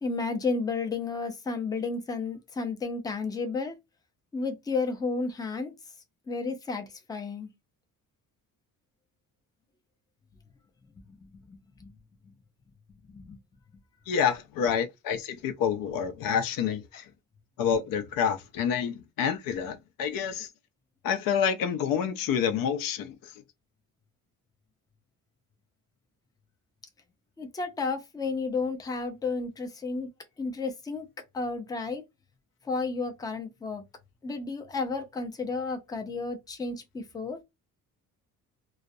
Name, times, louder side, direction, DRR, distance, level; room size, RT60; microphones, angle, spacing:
voice 1, 0.0-3.7 4.3-5.7 6.3-7.5 11.5-11.9 13.1-13.4 27.4-30.1 30.4-31.1 31.3-32.0 32.7-33.8 34.2-37.4, left 4 dB, 10° left, 0.4 m, -32 dB
voice 2, 14.1-17.1 17.6-20.5 21.0-23.3, left 7 dB, 80° left, 0.5 m, -28 dB
2.3 x 2.1 x 2.6 m
cardioid pair, 145°, 34 cm